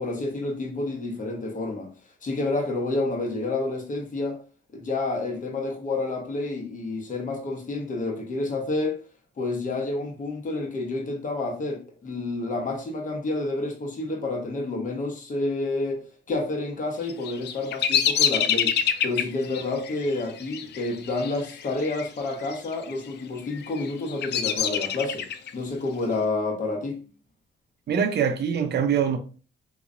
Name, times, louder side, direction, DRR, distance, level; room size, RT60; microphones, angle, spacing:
voice 1, 0.0-1.9 2.2-4.4 4.7-9.0 9.4-18.7 19.0-25.3 25.5-27.0, left 2 dB, 40° left, 1.1 m, -29 dB
Bird vocalization bird call bird song, 17.0-22.1 22.3-22.9 23.5-25.5, left 8 dB, 60° left, 0.4 m, -26 dB
voice 2, 27.9-29.2, right 7 dB, 55° right, 0.7 m, -23 dB
3.7 x 3.0 x 2.5 m
cardioid pair, 90°, 20 cm